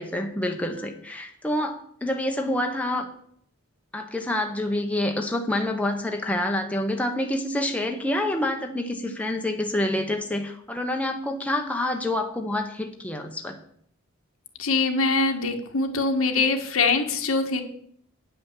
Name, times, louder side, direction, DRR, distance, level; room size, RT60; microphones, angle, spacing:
voice 1, 0.0-3.1 3.9-13.6, left 1 dB, 5° left, 3 dB, 0.9 m, -27 dB
voice 2, 14.6-17.6, left 3 dB, 90° left, 4 dB, 1.5 m, -23 dB
9.6 x 5.7 x 7.3 m, 0.66 s
head